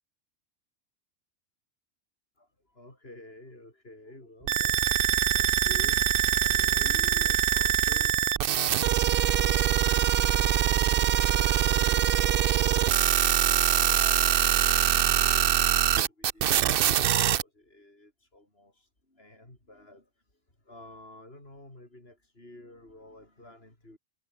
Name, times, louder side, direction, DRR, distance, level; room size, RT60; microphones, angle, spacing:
voice 1, 2.4-4.9 5.3-8.4 8.7-13.2 13.6-24.0, left 1 dB, 55° left, 6.5 m, -51 dB
sound 1, 4.5-17.4, right 10 dB, 55° right, 0.8 m, -23 dB
omnidirectional pair, 1.2 m